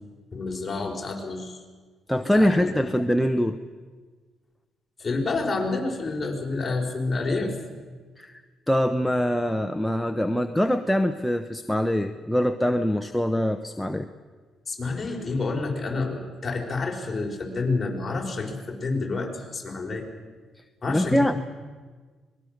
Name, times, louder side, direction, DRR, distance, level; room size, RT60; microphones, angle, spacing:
voice 1, 0.3-1.6 2.3-2.9 5.0-7.5 14.7-20.1 20.8-21.4, left 3 dB, 25° left, 0 dB, 4.6 m, -29 dB
voice 2, 2.1-3.6 8.2-14.1 20.9-21.4, equal, 5° left, 7 dB, 0.9 m, -24 dB
26.0 x 20.5 x 6.6 m, 1.5 s
cardioid pair, 90°, 0 cm